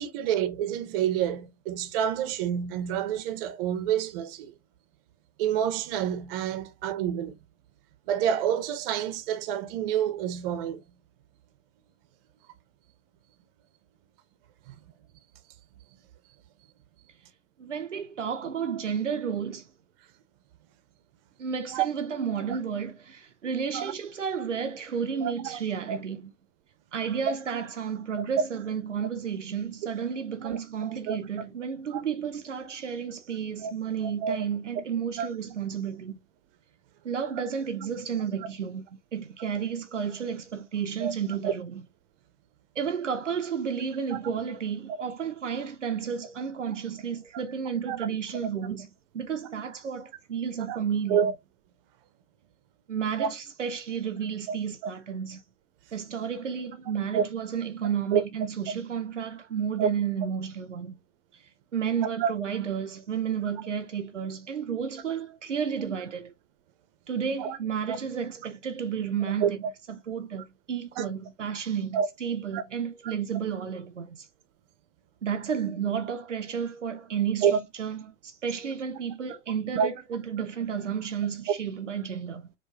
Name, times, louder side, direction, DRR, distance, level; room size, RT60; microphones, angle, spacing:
voice 1, 0.0-4.5 5.4-7.4 8.1-10.8 14.7-14.8 21.7-21.9 23.7-23.9 25.2-25.6 25.9-26.0 30.4-31.2 31.9-32.0 33.6-33.7 34.0-34.4 35.2-35.3 41.0-41.1 41.4-41.5 44.1-44.2 47.9-48.0 50.7-50.8 51.1-51.3 53.2-53.3 57.1-57.2 58.1-58.2 59.8-59.9 62.2-62.3 67.4-67.6 67.9-68.0 69.4-69.5 71.0-71.1 71.9-72.1 72.5-72.6 77.4-77.6 79.7-79.9, right 9 dB, 50° right, 0.7 m, -28 dB
voice 2, 17.6-19.7 21.4-26.3 26.9-36.2 37.0-38.9 39.1-41.9 42.8-48.9 49.1-51.2 52.9-55.4 55.9-61.0 61.7-66.3 67.1-69.6 70.1-74.3 75.2-82.5, right 7 dB, 90° right, 0.5 m, -32 dB
4.6 x 2.2 x 2.8 m
figure-of-eight pair, 80°, 36 cm